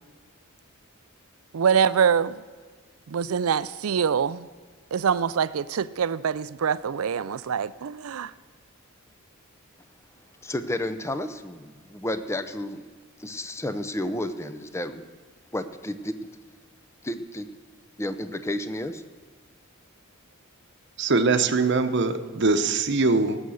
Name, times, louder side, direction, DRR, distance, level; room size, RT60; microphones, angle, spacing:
voice 1, 1.5-2.4 3.1-4.5 4.9-8.3, right 7 dB, 80° right, 0.4 m, -24 dB
voice 2, 10.4-12.8 13.2-15.1 15.5-16.2 17.0-17.5 18.0-19.0, left 1 dB, 15° left, 0.6 m, -31 dB
voice 3, 21.0-23.4, right 3 dB, 55° right, 0.9 m, -22 dB
18.5 x 8.0 x 6.4 m
head